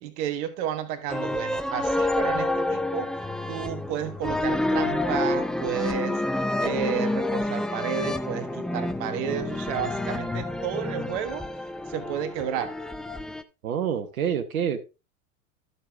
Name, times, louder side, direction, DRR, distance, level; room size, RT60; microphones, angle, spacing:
voice 1, 0.0-3.1 3.5-6.2 6.6-11.4 11.9-12.7, right 9 dB, 55° right, 9 dB, 1.4 m, -31 dB
sound 1, 1.1-13.4, left 2 dB, ahead, 0.4 m, -28 dB
voice 2, 13.6-14.8, right 8 dB, 75° right, 8 dB, 1.3 m, -27 dB
12.5 x 6.9 x 3.4 m, 0.28 s
figure-of-eight pair, 85°, 43 cm